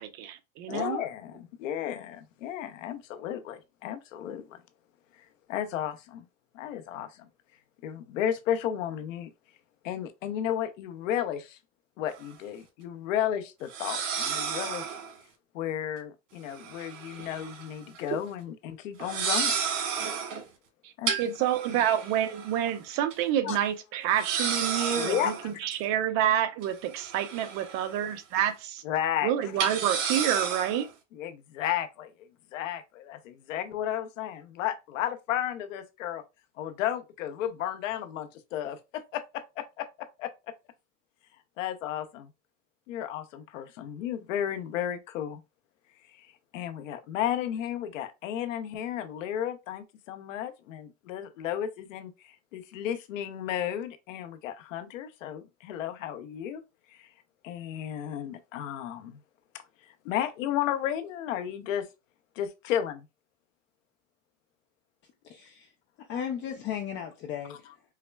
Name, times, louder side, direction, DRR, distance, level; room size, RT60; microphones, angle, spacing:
voice 1, 0.0-1.0 20.8-20.9 21.2-28.8 29.2-30.9, right 10 dB, 45° right, 0.7 m, -28 dB
voice 2, 0.7-4.6 5.5-6.2 6.5-7.3 7.8-9.3 9.8-11.6 12.0-15.0 15.5-19.6 21.0-21.3 21.7-21.8 23.4-23.6 24.8-25.3 28.8-29.5 31.1-32.1 32.5-36.2 36.6-40.3 41.6-42.3 42.9-45.4 46.2-56.6 56.9-57.1 57.4-59.2 59.8-61.9 62.4-63.1, left 10 dB, 85° left, 0.7 m, -33 dB
sound 1, 12.1-12.2 13.7-15.1 16.5-17.7 18.0-18.2 19.0-20.4 21.1-22.7 23.1-23.2 23.5-23.6 24.2-25.8 26.6-28.1 28.4-28.5 29.6-30.9, right 6 dB, 75° right, 1.4 m, -32 dB
voice 3, 65.2-65.7 66.0-67.8, left 8 dB, 30° left, 0.4 m, -36 dB
5.6 x 2.1 x 2.2 m
supercardioid pair, 130°, 38 cm